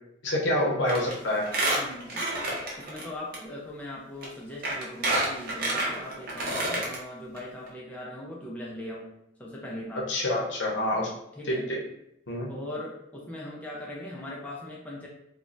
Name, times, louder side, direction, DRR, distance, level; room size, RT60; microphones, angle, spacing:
voice 1, 0.2-1.5 9.9-11.1 11.5-11.8 12.3-12.5, left 1 dB, 70° left, -2 dB, 0.7 m, -27 dB
Squeak, 0.9-1.1 1.4-3.0 3.3-3.4 4.2-4.3 4.6-7.0 7.4-7.5 7.7-7.8, right 2 dB, 50° right, 0.7 m, -28 dB
voice 2, 1.7-2.3 2.8-9.1 9.4-10.1 11.4-11.7 12.5-15.1, left 1 dB, 10° left, -5 dB, 0.4 m, -40 dB
3.1 x 2.2 x 2.5 m, 0.80 s
head